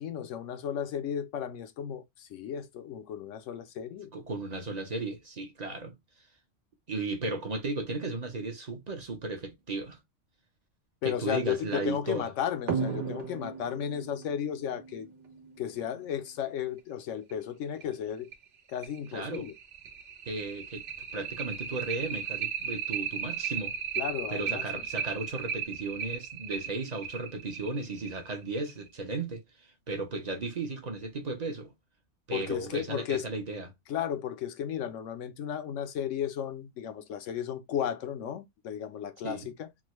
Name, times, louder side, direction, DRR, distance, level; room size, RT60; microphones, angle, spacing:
voice 1, 0.0-4.1 11.0-15.1 15.6-18.3 18.7-19.5 24.0-24.6 32.3-33.2 33.9-39.7, left 9 dB, 85° left, 1.0 m, -34 dB
voice 2, 4.1-5.9 6.9-10.0 11.0-12.3 19.1-19.5 20.3-20.8 21.1-23.7 24.3-31.7 32.3-33.7 39.2-39.5, right 3 dB, 40° right, 0.7 m, -35 dB
sound 1, 12.7-15.8 17.3-17.4 17.8-17.9 18.3-18.4 18.8-28.9, right 7 dB, 70° right, 1.2 m, -35 dB
3.7 x 2.1 x 3.0 m
omnidirectional pair, 1.2 m